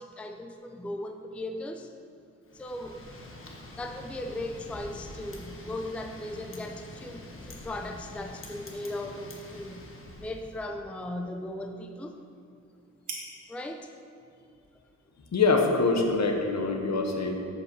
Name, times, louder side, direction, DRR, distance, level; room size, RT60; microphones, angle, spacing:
voice 1, 0.0-1.9 2.5-3.0 3.8-9.9 10.2-12.1 13.5-13.9, left 1 dB, 5° left, 5 dB, 0.4 m, -37 dB
Wind, 2.5-10.6, left 1 dB, 45° left, 1.2 m, -45 dB
sound 1, 8.7-16.5, right 3 dB, 75° right, 1.6 m, -51 dB
voice 2, 15.3-17.4, left 3 dB, 60° left, 3 dB, 1.1 m, -24 dB
7.9 x 5.3 x 6.3 m, 2.4 s
wide cardioid pair, 100°, 30 cm